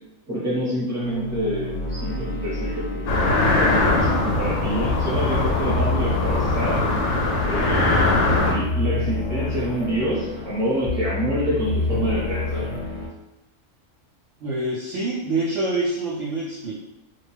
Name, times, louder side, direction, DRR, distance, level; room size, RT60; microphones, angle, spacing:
voice 1, 0.3-6.9 7.4-12.7, equal, 10° right, -9 dB, 1.0 m, -27 dB
sound 1, 1.0-13.1, left 2 dB, 40° left, 0.4 m, -29 dB
sound 2, 3.1-8.5, left 2 dB, 65° left, 0.8 m, -21 dB
voice 2, 14.4-16.8, right 2 dB, 65° right, -6 dB, 0.8 m, -26 dB
2.5 x 2.3 x 3.3 m, 0.96 s
omnidirectional pair, 1.6 m